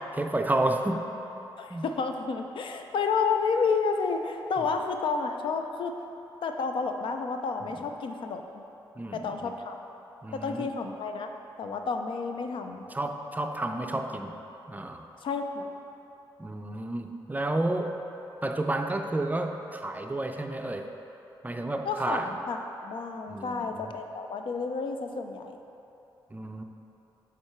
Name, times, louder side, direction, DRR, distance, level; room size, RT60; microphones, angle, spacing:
voice 1, 0.2-1.1 1.7-1.8 7.6-7.7 9.0-9.6 10.2-10.7 12.9-14.3 14.7-15.1 16.4-18.0 18.4-20.9 21.4-22.3 23.3-23.9 26.3-26.6, right 2 dB, 20° right, 5 dB, 0.4 m, -31 dB
voice 2, 1.6-5.9 6.4-8.4 9.1-9.8 10.3-11.3 11.6-12.8 15.2-15.7 21.8-25.6, left 5 dB, 70° left, 5 dB, 0.5 m, -30 dB
7.8 x 3.7 x 4.4 m, 3.0 s
cardioid pair, 70°, 9 cm